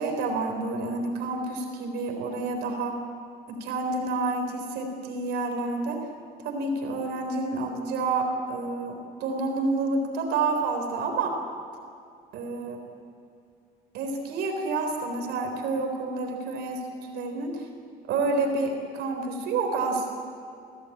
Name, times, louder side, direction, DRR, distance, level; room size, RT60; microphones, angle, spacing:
voice 1, 0.0-3.0 3.5-6.1 6.4-11.4 12.3-12.8 13.9-17.7 18.1-20.1, right 3 dB, 80° right, 4 dB, 3.9 m, -29 dB
23.5 x 17.0 x 8.8 m, 2.4 s
cardioid pair, 110°, 17 cm